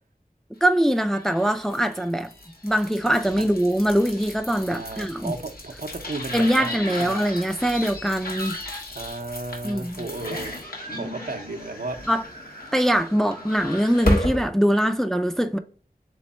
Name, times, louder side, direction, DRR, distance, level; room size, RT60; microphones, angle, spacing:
voice 1, 0.6-2.3 2.6-5.3 6.3-8.6 9.6-10.0 12.1-12.2 12.7-15.6, equal, 5° left, 0.4 m, -22 dB
sound 1, 0.8-14.5, left 1 dB, 80° left, 1.3 m, -33 dB
voice 2, 4.7-7.2 8.9-10.6 10.9-12.0, right 2 dB, 75° right, 0.7 m, -34 dB
3.5 x 3.1 x 4.1 m
wide cardioid pair, 45°, 15 cm